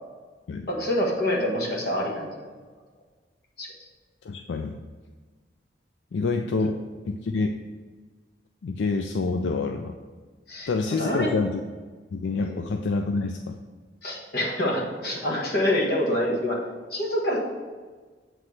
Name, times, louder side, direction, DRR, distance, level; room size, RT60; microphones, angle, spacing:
voice 1, 0.7-2.5 3.6-3.7 10.5-11.3 12.4-12.5 14.0-16.6 16.9-17.4, left 1 dB, 60° left, -3 dB, 1.5 m, -26 dB
voice 2, 4.2-4.8 6.1-6.8 7.1-7.6 8.6-9.9 10.7-11.6 12.1-13.6, left 3 dB, 85° left, 5 dB, 0.4 m, -27 dB
7.6 x 3.2 x 6.3 m, 1.4 s
head